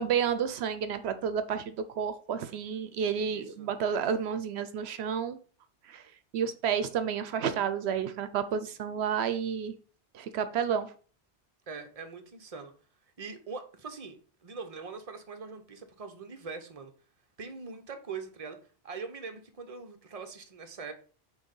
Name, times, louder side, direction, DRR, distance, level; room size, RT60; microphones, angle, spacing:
voice 1, 0.0-5.4 5.9-6.0 6.3-9.7 10.1-10.9, right 7 dB, 80° right, 12 dB, 0.8 m, -30 dB
voice 2, 3.3-3.7 11.7-12.7 13.2-16.9 17.4-18.6 18.8-20.9, right 4 dB, 35° right, 6 dB, 0.9 m, -42 dB
6.2 x 3.2 x 5.3 m, 0.39 s
omnidirectional pair, 1.1 m